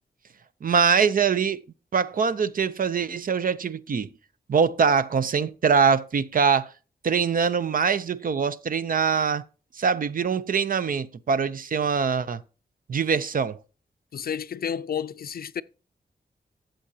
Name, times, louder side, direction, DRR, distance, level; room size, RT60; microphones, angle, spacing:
voice 1, 0.6-1.6 1.9-4.1 4.5-6.7 7.0-9.4 9.8-12.4 12.9-13.6, right 6 dB, 60° right, 0.6 m, -23 dB
voice 2, 14.1-15.6, left 8 dB, 65° left, 0.4 m, -31 dB
13.0 x 7.7 x 2.8 m
wide cardioid pair, 160°, 17 cm